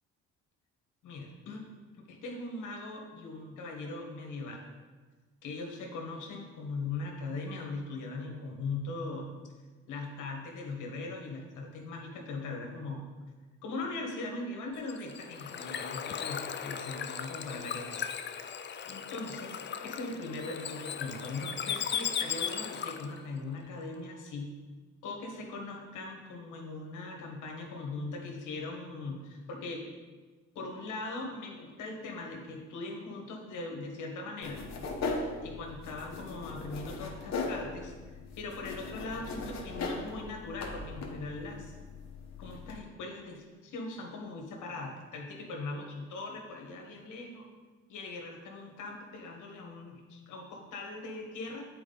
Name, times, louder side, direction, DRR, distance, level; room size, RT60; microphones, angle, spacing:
voice 1, 1.0-1.6 2.1-4.6 5.4-9.3 9.9-13.0 13.6-17.9 18.8-24.5 25.0-29.9 30.5-34.6 35.4-41.7 42.4-47.4 47.9-51.7, left 3 dB, 80° left, 0 dB, 1.5 m, -40 dB
Bird / Water, 14.7-23.2, left 7 dB, 40° left, 0.4 m, -37 dB
sound 1, 34.4-42.8, left 3 dB, 60° left, 1.2 m, -39 dB
8.9 x 4.6 x 3.9 m, 1.4 s
cardioid pair, 90°, 30 cm